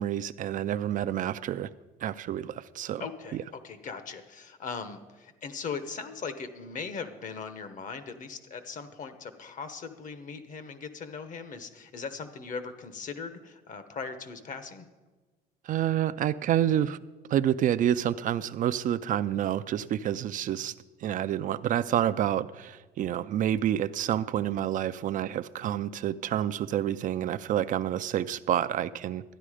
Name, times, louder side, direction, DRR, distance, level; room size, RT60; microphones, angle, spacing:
voice 1, 0.0-1.7 2.0-3.0 3.3-3.4 15.7-17.0 17.3-20.7 21.0-29.2, right 11 dB, 50° right, 12 dB, 0.4 m, -28 dB
voice 2, 3.0-14.9, left 5 dB, 50° left, 11 dB, 1.0 m, -39 dB
12.5 x 9.9 x 4.9 m, 1.3 s
cardioid pair, 110°, 17 cm